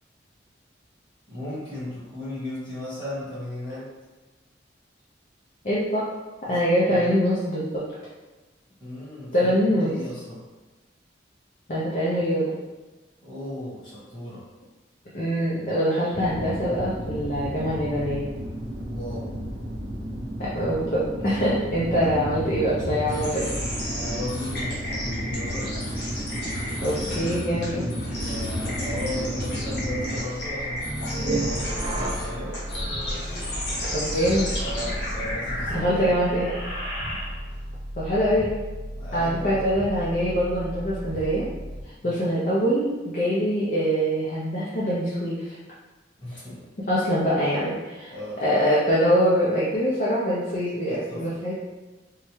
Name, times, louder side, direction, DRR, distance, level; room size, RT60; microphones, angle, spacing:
voice 1, 1.3-3.9 6.4-6.6 6.9-7.1 8.8-10.4 13.2-14.4 18.9-19.3 23.9-25.7 27.1-32.6 34.6-36.2 39.0-39.8 42.0-42.3 46.2-46.7 48.1-48.4 50.9-51.5, left 1 dB, 25° left, -10 dB, 1.4 m, -36 dB
voice 2, 5.6-6.1 6.5-7.8 9.3-9.9 11.7-12.5 15.1-18.3 20.4-23.4 26.8-27.8 33.9-34.5 35.7-36.5 38.0-38.6 39.1-41.5 42.0-45.5 46.9-48.1 48.4-51.5, equal, 45° left, -8 dB, 0.5 m, -24 dB
sound 1, 16.1-30.2, equal, 55° right, 0.9 m, -33 dB
sound 2, 23.1-37.6, equal, 70° left, 1.0 m, -33 dB
sound 3, 30.8-42.0, right 1 dB, 30° right, 0.3 m, -34 dB
3.5 x 2.1 x 3.0 m, 1.2 s
head